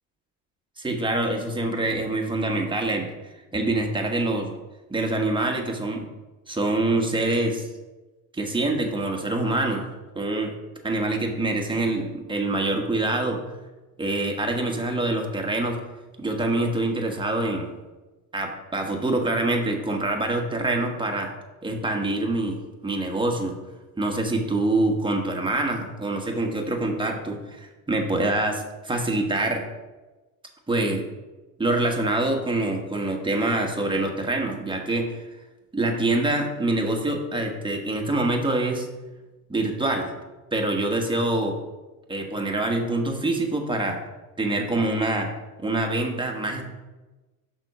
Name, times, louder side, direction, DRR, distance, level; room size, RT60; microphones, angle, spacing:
voice 1, 0.8-3.1 3.5-4.5 4.9-6.1 6.5-7.7 8.3-9.9 10.1-10.5 10.8-13.4 14.0-15.8 16.2-17.7 18.3-21.3 21.6-23.6 24.0-29.7 30.7-31.1 31.6-35.2 35.7-38.9 39.5-40.1 40.5-41.6 42.1-44.0 44.4-45.3 45.6-46.6, right 2 dB, 10° right, 2 dB, 1.3 m, -25 dB
6.1 x 3.7 x 5.5 m, 1.1 s
supercardioid pair, 85°, 42 cm